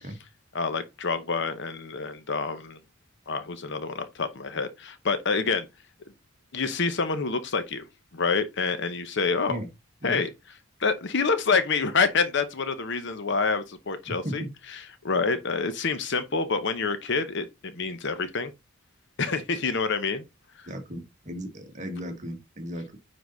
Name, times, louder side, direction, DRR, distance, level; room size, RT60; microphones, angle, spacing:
voice 1, 0.5-2.8 3.3-5.7 6.5-7.8 8.1-9.6 10.0-10.3 10.8-14.4 15.0-18.5 19.2-20.2, left 4 dB, 55° left, 0.9 m, -27 dB
voice 2, 14.1-14.5 20.7-23.0, equal, 35° right, 1.5 m, -36 dB
9.6 x 4.0 x 3.9 m
head